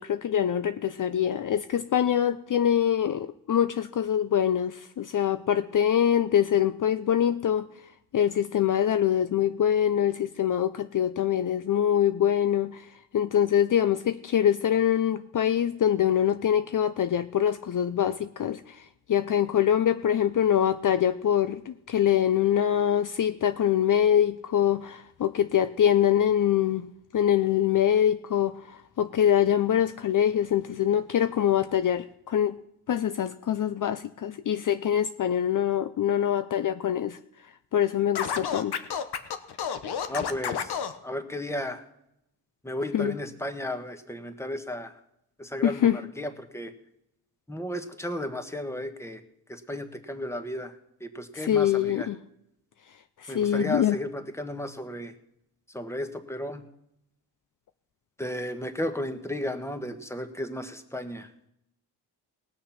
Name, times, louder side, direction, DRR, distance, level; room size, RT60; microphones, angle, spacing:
voice 1, 0.0-7.7 8.1-12.9 13.1-18.8 19.1-26.9 27.1-32.6 32.9-37.2 37.7-38.8 42.9-43.1 45.6-46.0 51.4-52.2 53.2-54.0, left 10 dB, 50° left, 11 dB, 0.6 m, -24 dB
Scratching (performance technique), 38.1-40.9, left 7 dB, 75° left, 1.0 m, -30 dB
voice 2, 40.1-40.8 41.0-41.8 42.6-45.0 45.4-46.7 47.5-49.2 49.5-50.7 51.0-52.1 53.3-55.1 55.7-56.6 58.2-61.3, left 1 dB, 5° left, 8 dB, 1.4 m, -34 dB
19.0 x 6.6 x 5.8 m, 0.80 s
cardioid pair, 70°, 40 cm